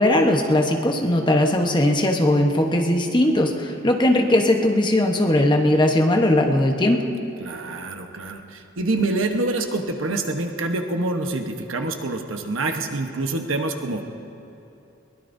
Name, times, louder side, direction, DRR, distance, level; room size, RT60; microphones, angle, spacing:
voice 1, 0.0-7.0, left 1 dB, 25° left, 3 dB, 1.1 m, -19 dB
voice 2, 7.4-14.0, right 2 dB, 75° right, 4 dB, 1.1 m, -26 dB
22.5 x 20.5 x 2.7 m, 2.8 s
head